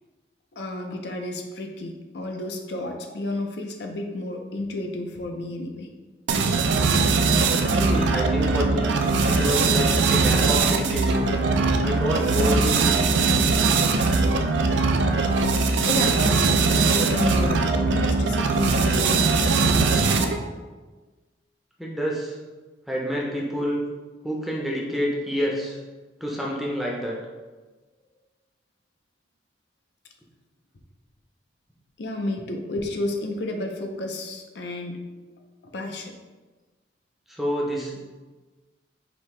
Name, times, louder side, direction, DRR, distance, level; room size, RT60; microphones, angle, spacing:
voice 1, 0.5-5.9 10.0-10.2 15.9-20.2 32.0-35.0 35.7-36.1, left 1 dB, 65° left, 3 dB, 0.5 m, -31 dB
sound 1, 6.3-20.5, right 4 dB, 80° right, 0.4 m, -21 dB
voice 2, 7.7-9.0 9.3-11.3 11.8-13.1 21.8-22.3 22.9-23.8 24.2-25.8 26.2-27.2 37.3-38.0, equal, ahead, -3 dB, 0.5 m, -28 dB
5.1 x 2.7 x 3.2 m, 1.3 s
head